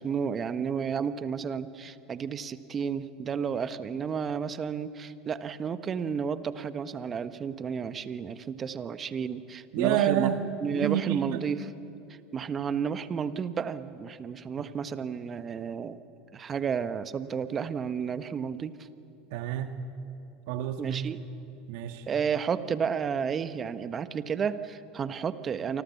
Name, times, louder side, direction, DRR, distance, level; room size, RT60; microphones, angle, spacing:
voice 1, 0.0-10.3 10.6-11.7 12.1-16.0 16.3-18.9 20.8-21.2 22.1-25.8, right 7 dB, 35° right, 12 dB, 1.3 m, -32 dB
voice 2, 9.7-10.4 10.7-11.4 19.3-19.7 20.5-21.0 21.7-22.0, right 11 dB, 65° right, 7 dB, 1.8 m, -28 dB
29.0 x 25.0 x 7.2 m, 2.7 s
hypercardioid pair, 85°, 0 cm